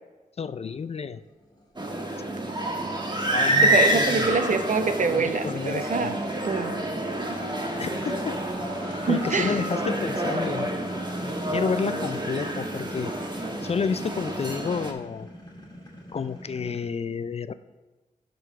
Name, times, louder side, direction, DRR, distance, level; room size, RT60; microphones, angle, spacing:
voice 1, 0.4-1.2 3.3-4.3 5.0-6.2 7.8-8.4 9.1-10.7 11.5-13.1 13.6-15.3 16.1-17.5, left 5 dB, 45° left, 14 dB, 0.4 m, -30 dB
sound 1, 0.7-16.8, equal, 30° left, 1.6 m, -43 dB
sound 2, 1.8-14.9, right 1 dB, 30° right, 1.2 m, -28 dB
voice 2, 3.6-6.2 6.4-6.8 9.0-9.6, right 4 dB, 55° right, 8 dB, 0.8 m, -25 dB
10.0 x 3.9 x 5.5 m, 1.2 s
cardioid pair, 65°, 15 cm